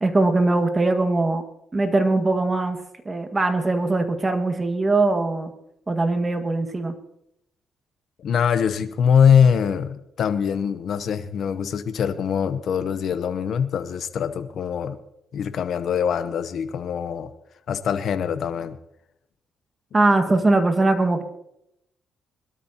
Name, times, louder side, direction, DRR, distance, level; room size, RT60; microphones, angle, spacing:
voice 1, 0.0-1.4 1.7-2.8 3.1-5.5 5.9-7.0 19.9-21.2, right 2 dB, 25° right, 6 dB, 1.8 m, -21 dB
voice 2, 8.2-15.0 15.3-17.3 17.7-18.8, left 7 dB, 65° left, 10 dB, 0.8 m, -23 dB
21.5 x 12.5 x 2.9 m, 0.81 s
cardioid pair, 90°, 0 cm